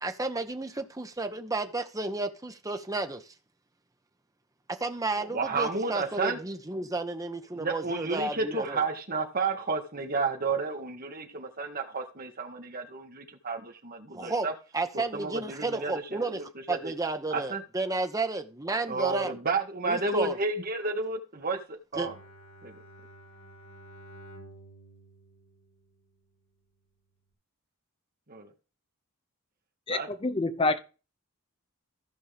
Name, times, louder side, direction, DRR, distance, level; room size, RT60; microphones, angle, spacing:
voice 1, 0.0-3.2 4.8-8.8 14.1-14.5 14.7-16.4 16.7-19.3 19.9-20.4 22.0-22.1, right 2 dB, 15° right, 0.9 m, -32 dB
voice 2, 5.2-6.4 7.5-14.5 14.9-16.9 17.3-17.6 18.9-22.2 22.6-22.8 28.3-28.5 29.9-30.1, right 3 dB, 45° right, 1.6 m, -31 dB
Bowed string instrument, 21.9-26.3, right 1 dB, 75° left, 4.5 m, -51 dB
voice 3, 29.9-30.8, left 2 dB, 25° left, 0.8 m, -27 dB
15.0 x 5.3 x 3.4 m
head